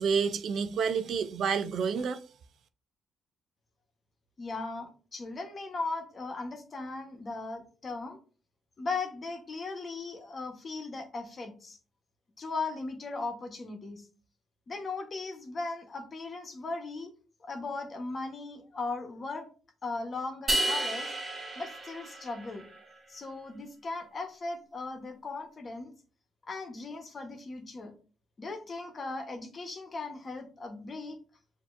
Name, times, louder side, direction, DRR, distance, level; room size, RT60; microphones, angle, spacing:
voice 1, 0.0-2.2, right 6 dB, 65° right, 0.5 m, -29 dB
voice 2, 4.4-8.2 8.8-11.8 12.4-14.1 14.7-17.1 17.4-19.5 19.8-21.1 21.5-22.6 23.1-25.9 26.5-27.9 28.4-31.2, left 3 dB, 40° left, 1.1 m, -38 dB
sound 1, 20.5-22.8, right 1 dB, 35° right, 1.4 m, -32 dB
6.7 x 2.9 x 2.5 m
cardioid pair, 90°, 0 cm